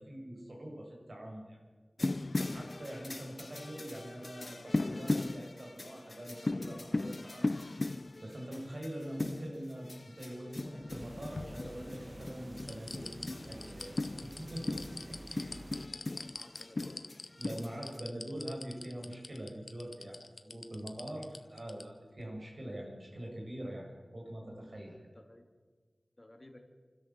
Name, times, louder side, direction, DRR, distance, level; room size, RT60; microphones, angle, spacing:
voice 1, 0.0-1.6 2.5-7.5 8.2-9.9 10.2-13.1 13.3-15.6 17.4-25.0, right 1 dB, 65° right, -1 dB, 7.6 m, -44 dB
sound 1, 2.0-18.0, left 2 dB, 50° left, 0.5 m, -38 dB
sound 2, 10.8-12.1 12.6-21.8 22.2-22.3, left 3 dB, 70° left, 1.2 m, -45 dB
sound 3, 10.9-15.9, right 1 dB, 35° right, 1.6 m, -49 dB
voice 2, 15.9-17.0 25.1-25.5 26.2-26.6, left 1 dB, 30° left, 4 dB, 2.8 m, -55 dB
28.0 x 12.5 x 7.6 m, 1.4 s
wide cardioid pair, 50°, 0 cm